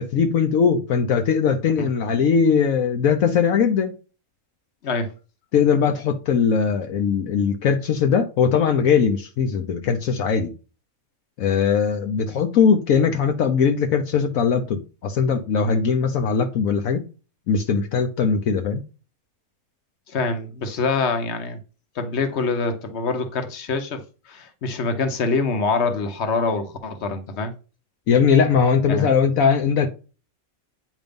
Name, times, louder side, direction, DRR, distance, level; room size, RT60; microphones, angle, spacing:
voice 1, 0.0-3.9 5.5-10.5 11.4-17.0 17.5-18.8 28.1-29.9, left 6 dB, 75° left, 1.2 m, -20 dB
voice 2, 20.1-21.6 21.9-27.5 28.9-29.1, left 4 dB, 50° left, 1.3 m, -25 dB
9.0 x 3.1 x 5.2 m
omnidirectional pair, 1.5 m